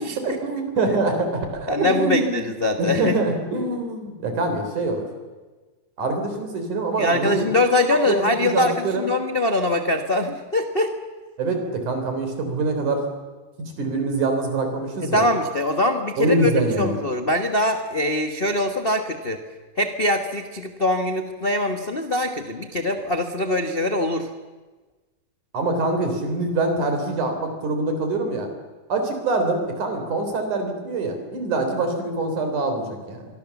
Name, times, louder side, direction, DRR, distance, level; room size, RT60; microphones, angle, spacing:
voice 1, 0.0-2.5 2.8-5.1 6.0-7.5 7.9-9.1 11.4-13.1 13.8-15.3 16.2-17.0 25.5-28.5 28.9-33.2, right 2 dB, 70° right, 5 dB, 5.3 m, -24 dB
voice 2, 1.7-3.2 7.0-10.9 15.1-16.5 16.8-19.4 19.8-24.3, left 1 dB, 90° left, 5 dB, 0.5 m, -23 dB
24.0 x 24.0 x 7.2 m, 1.3 s
omnidirectional pair, 3.6 m